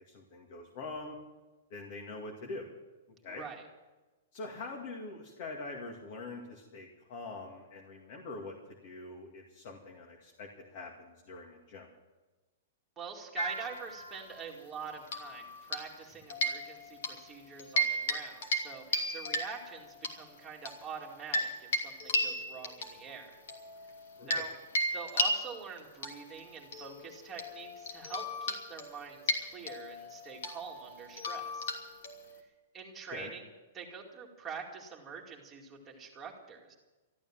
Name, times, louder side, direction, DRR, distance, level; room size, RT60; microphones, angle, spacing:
voice 1, 0.1-1.2 1.7-2.7 3.2-3.4 4.3-11.9 24.2-24.5 33.1-33.3, left 3 dB, 45° left, 0 dB, 2.3 m, -44 dB
voice 2, 3.3-3.6 13.0-23.4 24.2-24.5 24.9-31.7 32.4-33.5 33.7-36.7, right 6 dB, 10° right, -1 dB, 2.3 m, -45 dB
sound 1, 13.4-14.4 15.1-16.0 16.3-17.2 17.6-18.2 18.4-18.7 18.9-20.1 20.7-24.5 24.8-32.4, left 1 dB, 70° left, 3.0 m, -35 dB
13.5 x 12.5 x 7.5 m, 1.2 s
hypercardioid pair, 165°, 0 cm